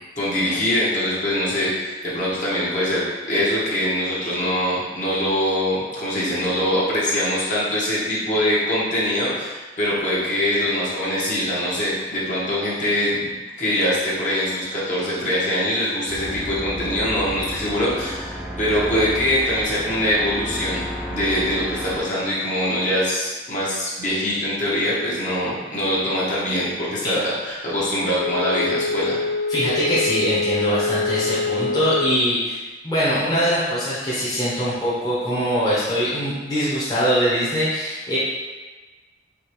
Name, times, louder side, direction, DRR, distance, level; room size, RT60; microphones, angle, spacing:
voice 1, 0.2-3.0 3.3-20.8 21.1-29.2, left 1 dB, 45° left, -7 dB, 1.2 m, -23 dB
sound 1, 16.1-22.0, equal, 5° right, 0.4 m, -32 dB
Wind instrument woodwind instrument, 28.1-32.3, left 4 dB, 80° left, 0.4 m, -25 dB
voice 2, 29.5-32.6 32.8-38.2, equal, 20° left, -10 dB, 1.0 m, -22 dB
5.0 x 3.0 x 3.1 m, 1.2 s
head